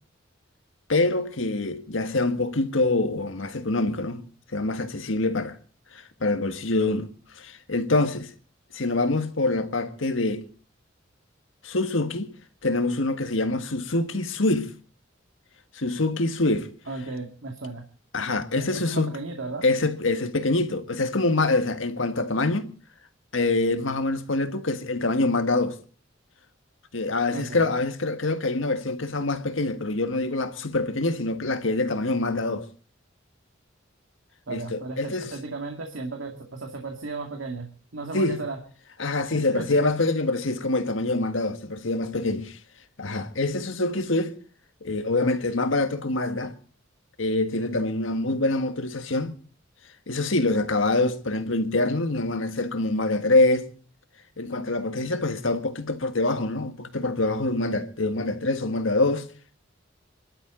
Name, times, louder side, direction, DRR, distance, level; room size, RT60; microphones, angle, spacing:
voice 1, 0.9-4.3 4.5-5.6 5.9-7.1 7.3-8.3 8.7-10.5 11.6-12.3 12.6-14.7 15.7-16.7 18.1-19.1 19.6-22.7 23.3-25.8 26.9-32.7 34.5-35.3 38.1-38.4 39.0-42.6 43.0-44.3 44.8-46.5 47.2-49.3 50.1-53.7 54.4-59.3, left 2 dB, 80° left, 1.7 m, -25 dB
voice 2, 16.9-17.8 18.5-19.7 27.3-27.7 34.5-38.6 39.3-39.7, right 3 dB, 75° right, 2.3 m, -35 dB
27.5 x 12.5 x 3.9 m
head